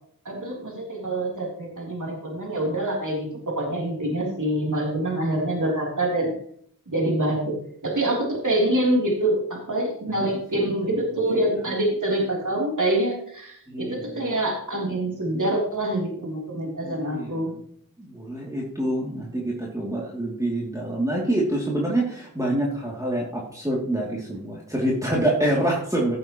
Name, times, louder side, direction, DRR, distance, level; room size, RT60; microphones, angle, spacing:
voice 1, 0.2-6.3 6.9-17.5, right 1 dB, 50° right, -2 dB, 3.4 m, -25 dB
voice 2, 13.7-14.4 16.8-17.5 18.0-26.2, right 1 dB, 10° right, -4 dB, 2.7 m, -26 dB
16.0 x 7.5 x 3.0 m, 0.64 s
cardioid pair, 45°, 38 cm